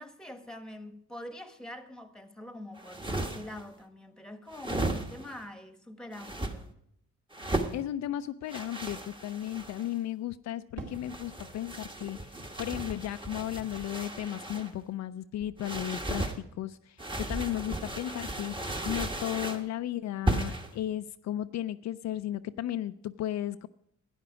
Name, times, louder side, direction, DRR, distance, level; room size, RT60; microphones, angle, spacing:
voice 1, 0.0-6.7, left 1 dB, ahead, 1.2 m, -44 dB
sound 1, 2.7-3.6 4.5-5.4 6.1-6.5 7.3-7.8 8.5-9.9 10.9-14.7 15.6-16.4 17.0-19.6 20.3-20.7, right 1 dB, 15° right, 1.3 m, -35 dB
voice 2, 7.7-23.7, left 12 dB, 65° left, 0.5 m, -35 dB
Fireworks, 10.8-15.1 15.4-16.2, right 3 dB, 55° right, 2.6 m, -51 dB
12.0 x 9.5 x 4.8 m
cardioid pair, 90°, 30 cm